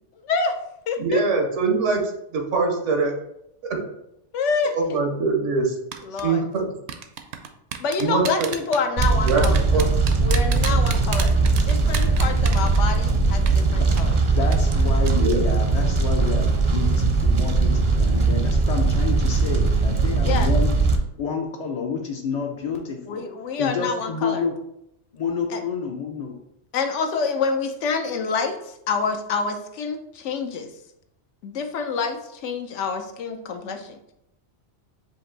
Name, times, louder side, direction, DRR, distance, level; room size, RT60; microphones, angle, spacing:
voice 1, 0.2-0.5 0.9-1.2 4.3-5.0 6.0-6.4 7.8-9.9 10.2-14.2 20.3-20.5 23.1-24.4 25.5-25.6 26.7-30.7 31.4-34.0, left 5 dB, 85° left, 5 dB, 1.0 m, -27 dB
voice 2, 1.0-2.0 2.3-3.1 3.6-3.8 4.7-5.7 6.2-6.7 8.0-8.5 9.2-9.9 15.1-15.4, right 4 dB, 90° right, 3 dB, 1.2 m, -23 dB
sound 1, 5.9-6.2 6.9-13.2 13.5-13.6 14.0-14.1 14.5-14.8 15.1-15.4 15.7-15.8, right 8 dB, 75° right, 0.8 m, -31 dB
Fire, 9.0-21.0, right 3 dB, 40° right, 0.4 m, -20 dB
voice 3, 14.4-20.7 21.2-23.3 23.6-24.5 25.1-26.3, left 5 dB, 55° left, 0 dB, 0.4 m, -29 dB
5.2 x 2.5 x 3.9 m, 0.79 s
omnidirectional pair, 1.2 m